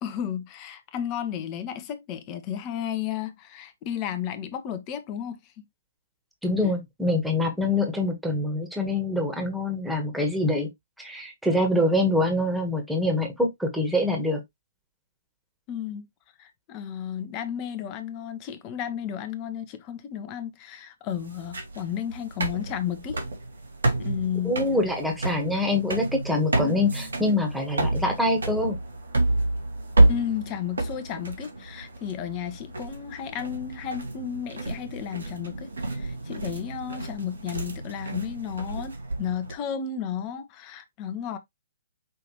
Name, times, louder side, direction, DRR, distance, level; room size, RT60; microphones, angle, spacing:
voice 1, 0.0-5.4 6.6-6.7 15.7-16.1 16.4-23.2 24.0-24.6 30.1-41.4, left 9 dB, 30° left, 0.9 m, -33 dB
voice 2, 6.4-10.7 11.0-14.4 24.4-28.8, left 1 dB, ahead, 1.3 m, -25 dB
sound 1, 21.1-39.5, right 2 dB, 75° right, 1.5 m, -29 dB
5.7 x 2.9 x 3.0 m
figure-of-eight pair, 125°, 0 cm